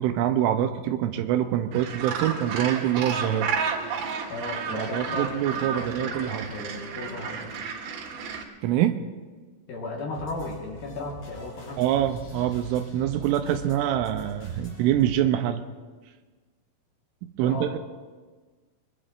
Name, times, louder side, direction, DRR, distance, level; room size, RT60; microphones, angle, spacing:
voice 1, 0.0-3.5 4.7-6.5 8.6-9.0 11.8-15.6 17.2-17.8, right 11 dB, 85° right, 8 dB, 3.0 m, -25 dB
Gull seagull, 1.7-8.4, right 6 dB, 70° right, 3.6 m, -32 dB
voice 2, 4.3-7.6 9.7-11.8 12.4-12.5 17.4-17.8, left 3 dB, 60° left, -1 dB, 2.8 m, -36 dB
sound 1, 10.1-15.1, right 3 dB, 35° left, 4.6 m, -43 dB
23.5 x 22.0 x 2.6 m, 1.4 s
omnidirectional pair, 5.7 m